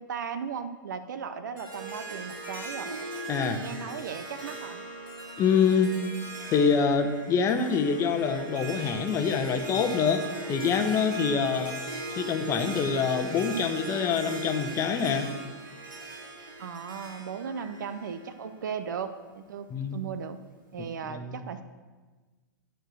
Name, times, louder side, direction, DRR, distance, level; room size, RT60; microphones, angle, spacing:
voice 1, 0.0-2.9 3.6-4.8 11.1-11.5 16.6-20.4 20.7-21.6, right 7 dB, 65° right, 10 dB, 0.6 m, -37 dB
Harp, 1.6-18.8, right 2 dB, 85° right, 2.4 m, -39 dB
voice 2, 3.3-3.6 5.4-5.9 6.5-10.2 10.5-11.8 12.1-15.3 19.7-20.0 21.0-21.4, left 6 dB, 30° left, 7 dB, 0.9 m, -25 dB
11.5 x 4.5 x 6.3 m, 1.3 s
figure-of-eight pair, 105°, 11 cm